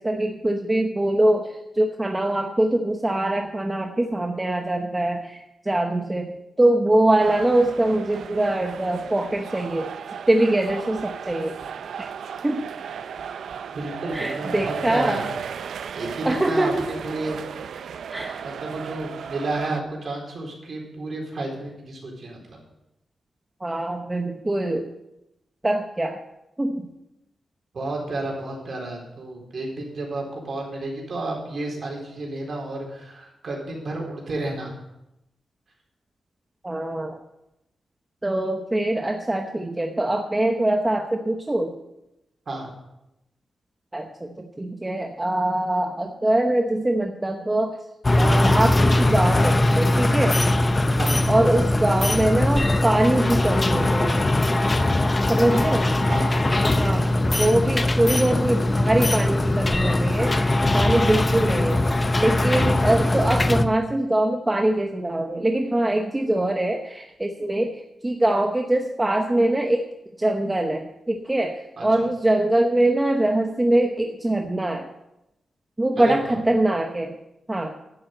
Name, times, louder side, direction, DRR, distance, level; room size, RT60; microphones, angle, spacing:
voice 1, 0.0-9.9 10.3-11.6 12.0-12.1 12.4-12.6 14.1-15.3 16.2-16.9 18.1-18.4 23.6-24.9 25.6-26.2 26.6-26.9 36.6-37.2 38.2-41.7 43.9-47.8 48.2-50.4 51.3-54.2 55.3-55.8 56.8-57.1 57.4-61.8 62.2-69.9 70.2-74.9 75.8-77.1 77.5-77.7, right 1 dB, 15° right, 3 dB, 0.8 m, -23 dB
sound 1, 7.2-19.8, right 7 dB, 80° right, 0.5 m, -35 dB
voice 2, 13.7-15.3 15.6-17.5 18.4-22.6 27.7-34.8 42.5-42.7 51.0-51.2 55.5-55.7 56.1-56.8 71.8-71.9 76.0-76.4, right 2 dB, 45° right, 0 dB, 3.9 m, -31 dB
sound 2, 48.0-63.6, left 1 dB, 20° left, 0.6 m, -21 dB
11.0 x 8.0 x 8.0 m, 0.88 s
wide cardioid pair, 170°, 0 cm